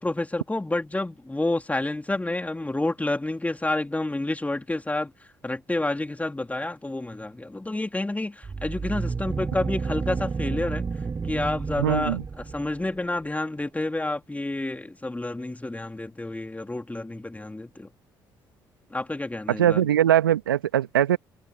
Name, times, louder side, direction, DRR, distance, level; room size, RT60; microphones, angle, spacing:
voice 1, 0.0-5.1 5.4-10.8 11.2-12.2 12.5-17.9 18.9-19.9, left 2 dB, 15° left, 3.4 m, -29 dB
sound 1, 8.4-12.8, right 4 dB, 30° right, 7.6 m, -30 dB
voice 2, 11.8-12.2 19.5-21.2, right 11 dB, 85° right, 1.6 m, -21 dB
figure-of-eight pair, 50°, 11 cm